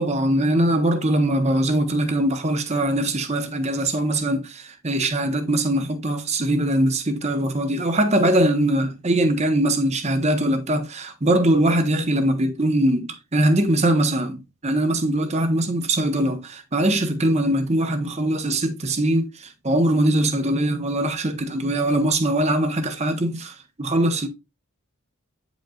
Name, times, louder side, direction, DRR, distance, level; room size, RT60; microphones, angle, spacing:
voice 1, 0.0-24.3, right 1 dB, 30° right, 0.8 m, -22 dB
8.9 x 5.2 x 2.3 m
head